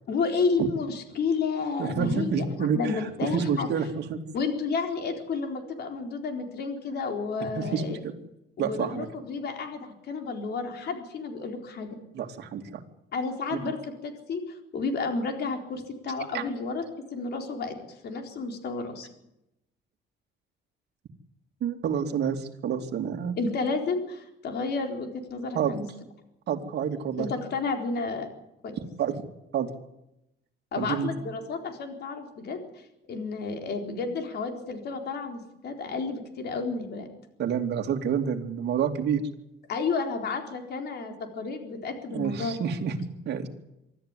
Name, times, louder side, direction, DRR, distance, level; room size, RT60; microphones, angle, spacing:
voice 1, 0.1-3.7 4.3-8.0 8.6-12.0 13.1-16.8 17.1-17.8 18.0-19.1 23.4-25.8 27.2-28.3 28.6-28.8 30.7-37.1 39.7-42.7, left 4 dB, 55° left, 4 dB, 4.1 m, -31 dB
voice 2, 1.8-4.2 7.5-8.1 8.6-9.1 12.1-12.8 13.5-13.6 16.3-16.4 21.6-23.4 25.5-25.7 26.5-27.3 29.0-29.2 29.5-29.7 30.8-31.1 37.4-39.3 42.1-42.9 43.3-43.5, right 7 dB, 55° right, 4 dB, 2.8 m, -28 dB
24.5 x 13.5 x 9.9 m, 0.86 s
cardioid pair, 140°, 20 cm